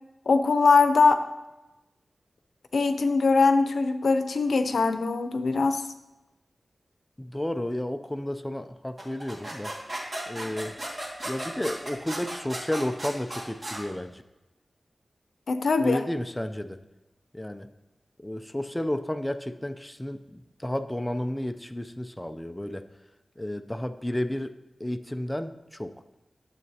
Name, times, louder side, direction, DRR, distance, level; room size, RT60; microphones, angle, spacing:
voice 1, 0.3-1.2 2.7-5.8 15.5-16.0, left 4 dB, 85° left, 9 dB, 0.6 m, -22 dB
voice 2, 7.2-10.7 11.2-14.2 15.8-16.8 17.3-17.7 18.2-22.9 23.4-24.5 24.8-25.9, left 1 dB, 10° left, 8 dB, 0.4 m, -32 dB
sound 1, 9.0-13.8, right 1 dB, 35° right, 2.0 m, -35 dB
12.5 x 7.4 x 2.8 m, 1.0 s
wide cardioid pair, 110°, 0 cm